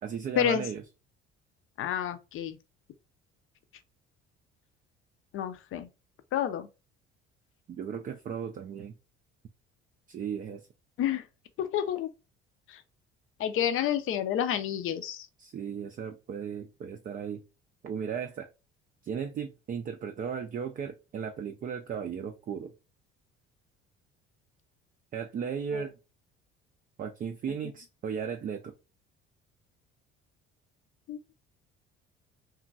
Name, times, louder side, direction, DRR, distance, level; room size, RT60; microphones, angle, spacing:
voice 1, 0.0-0.8 7.7-8.9 10.1-10.6 15.4-17.4 17.8-18.5 19.0-22.7 25.1-25.9 27.0-28.7, right 7 dB, 25° right, 0.4 m, -36 dB
voice 2, 1.8-2.6 5.3-5.9 6.3-6.7 11.0-11.2 11.6-12.1 12.7-12.8 13.4-15.3 25.7-25.8 31.1-31.2, left 9 dB, 40° left, 0.5 m, -29 dB
2.9 x 2.5 x 2.3 m
figure-of-eight pair, 55°, 32 cm